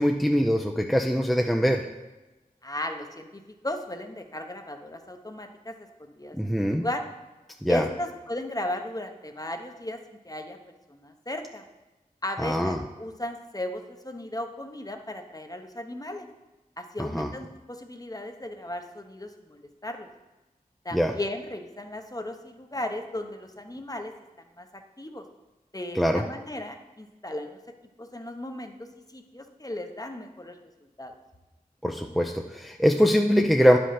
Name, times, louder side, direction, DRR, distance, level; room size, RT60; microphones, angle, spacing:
voice 1, 0.0-1.8 6.4-6.8 7.6-7.8 12.4-12.8 17.0-17.3 20.9-21.1 26.0-26.2 31.8-33.8, equal, ahead, 3 dB, 0.5 m, -23 dB
voice 2, 2.6-7.0 7.7-10.0 10.2-10.6 10.9-11.6 12.2-16.3 16.8-20.1 20.8-24.1 24.6-25.2 25.7-27.6 28.0-30.6 31.0-31.1, left 1 dB, 25° left, 5 dB, 0.9 m, -36 dB
9.9 x 5.3 x 5.7 m, 1.1 s
wide cardioid pair, 55°, 15 cm